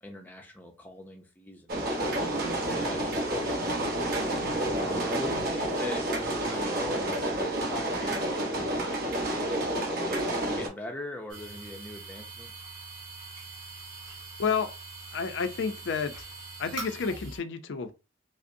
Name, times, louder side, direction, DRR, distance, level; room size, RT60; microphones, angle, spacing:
voice 1, 0.0-4.3 4.8-9.0 9.8-12.5, left 2 dB, 10° left, 0.5 m, -42 dB
sound 1, 1.7-10.7, right 1 dB, 50° right, 0.9 m, -29 dB
sound 2, 11.3-17.4, right 3 dB, 25° right, 1.7 m, -43 dB
voice 2, 14.4-14.7 15.1-16.3 16.6-17.9, left 5 dB, 65° left, 0.4 m, -30 dB
5.0 x 2.0 x 2.6 m
head